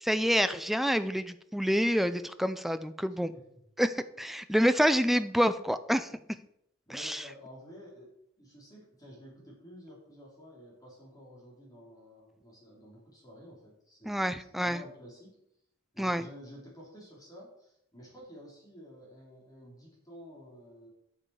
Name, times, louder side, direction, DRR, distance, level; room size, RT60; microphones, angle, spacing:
voice 1, 0.0-3.3 3.8-6.1 6.9-7.2 14.0-14.8 16.0-16.3, equal, ahead, 11 dB, 0.4 m, -27 dB
voice 2, 3.3-3.6 6.9-15.4 15.9-20.9, equal, 15° left, -4 dB, 3.4 m, -51 dB
8.8 x 7.6 x 4.8 m, 0.75 s
head